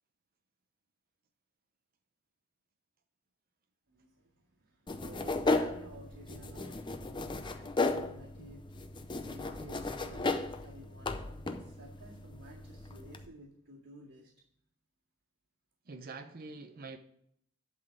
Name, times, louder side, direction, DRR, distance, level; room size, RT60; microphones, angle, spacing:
voice 1, 3.9-4.3 4.6-8.8 9.1-14.3, right 1 dB, 90° right, 2.0 m, -53 dB
sound 1, 4.9-13.3, left 3 dB, 20° left, 0.5 m, -35 dB
voice 2, 15.9-17.0, right 3 dB, 40° right, 0.6 m, -45 dB
11.0 x 4.0 x 7.7 m
head